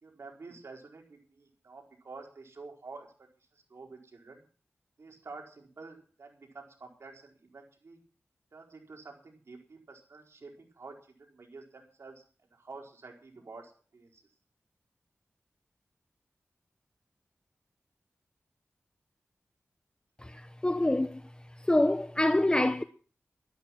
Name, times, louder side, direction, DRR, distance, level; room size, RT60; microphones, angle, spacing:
voice 1, 0.0-3.1 3.4-4.4 5.0-8.0 8.5-12.2 12.5-14.2, right 3 dB, 75° right, 4.6 m, -49 dB
voice 2, 20.2-21.2 21.7-22.8, left 1 dB, 20° left, 0.8 m, -26 dB
13.0 x 12.5 x 6.0 m
wide cardioid pair, 60°, 5 cm